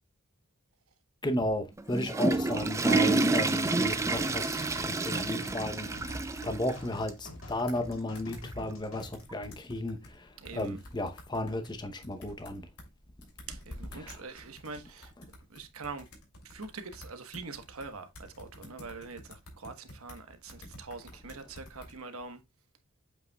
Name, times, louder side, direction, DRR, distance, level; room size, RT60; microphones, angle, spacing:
voice 1, 1.2-12.7 14.0-14.2, left 1 dB, 20° left, 0.7 m, -34 dB
Water / Toilet flush, 1.8-6.8 7.1-7.2 7.9-8.0 9.3-9.4, right 3 dB, 15° right, 0.3 m, -28 dB
sound 1, 3.8-9.1, left 1 dB, 65° left, 2.1 m, -47 dB
sound 2, 6.0-7.0 7.3-7.4 7.7-7.9 8.1-8.4 9.0-10.2 10.4-12.9 13.2-20.2 20.5-21.9, left 1 dB, 85° left, 2.7 m, -50 dB
voice 2, 10.4-10.8 13.5-15.1 15.5-16.1 16.4-22.4, right 4 dB, 75° right, 1.1 m, -44 dB
8.0 x 5.4 x 2.3 m
head